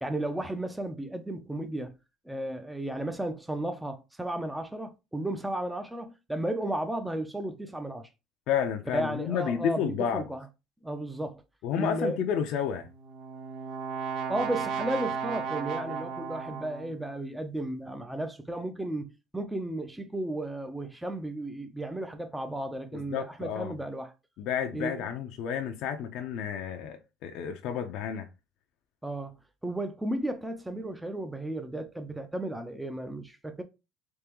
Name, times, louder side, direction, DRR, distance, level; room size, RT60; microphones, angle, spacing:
voice 1, 0.0-1.9 2.3-8.1 8.9-10.5 10.8-11.4 11.8-12.3 14.3-24.1 24.7-25.1 29.0-29.3 29.6-33.6, right 1 dB, 5° right, 0.5 m, -34 dB
voice 2, 8.5-10.3 11.6-12.9 22.9-23.7 24.4-28.3, left 8 dB, 65° left, 0.5 m, -31 dB
Brass instrument, 12.9-17.0, right 6 dB, 65° right, 0.5 m, -34 dB
3.6 x 2.9 x 3.0 m
supercardioid pair, 100°, 0 cm